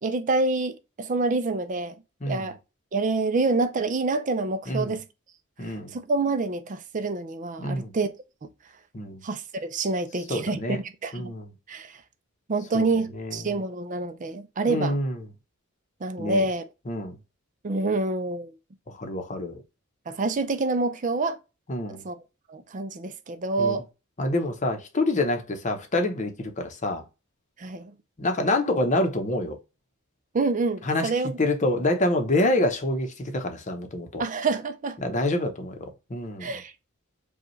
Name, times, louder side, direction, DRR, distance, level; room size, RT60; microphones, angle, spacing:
voice 1, 0.0-1.9 2.3-2.6 2.9-5.0 5.7-8.1 8.4-8.5 9.2-11.3 11.7-12.0 12.5-15.0 16.0-16.6 17.6-18.5 20.1-21.4 21.9-22.2 22.5-23.9 27.6-27.9 30.3-31.3 34.2-35.0 36.4-36.7, right 3 dB, 35° right, 0.5 m, -27 dB
voice 2, 2.2-2.5 4.7-5.0 5.6-6.0 7.6-7.9 8.9-9.2 10.3-10.8 11.1-11.5 12.7-12.9 13.1-13.6 14.7-15.2 16.2-16.4 16.9-17.2 18.9-19.6 21.7-22.0 23.6-23.8 24.2-27.0 28.2-29.6 30.8-31.1 31.4-34.2 35.0-36.5, left 1 dB, 35° left, 0.8 m, -27 dB
5.1 x 2.4 x 3.1 m
head